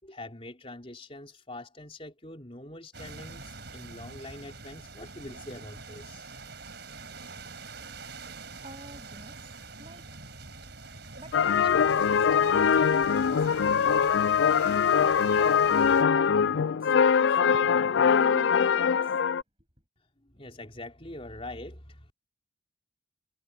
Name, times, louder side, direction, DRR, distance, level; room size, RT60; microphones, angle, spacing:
voice 1, 0.0-6.3 20.2-22.1, left 1 dB, 30° left, 4.0 m, -44 dB
sound 1, 2.9-16.0, right 3 dB, 55° right, 5.7 m, -45 dB
voice 2, 8.6-10.1 11.2-14.1 14.7-19.1, right 1 dB, 30° right, 7.1 m, -49 dB
sound 2, 11.3-19.4, left 7 dB, 65° left, 0.3 m, -23 dB
head